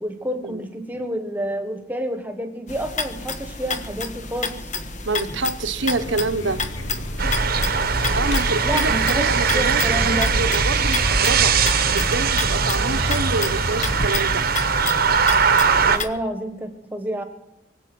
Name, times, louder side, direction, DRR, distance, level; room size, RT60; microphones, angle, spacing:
voice 1, 0.0-4.6 8.6-10.3 15.9-17.2, right 1 dB, 10° right, 6 dB, 1.4 m, -29 dB
sound 1, 2.7-16.1, left 4 dB, 40° left, 1.2 m, -31 dB
voice 2, 5.0-6.6 8.1-11.6 11.9-14.4, right 3 dB, 75° right, 9 dB, 1.1 m, -27 dB
Vehicle, 5.7-16.1, equal, 70° left, 1.5 m, -30 dB
sound 2, 7.2-16.0, right 6 dB, 50° right, 1.1 m, -21 dB
24.0 x 8.2 x 6.1 m, 0.92 s
head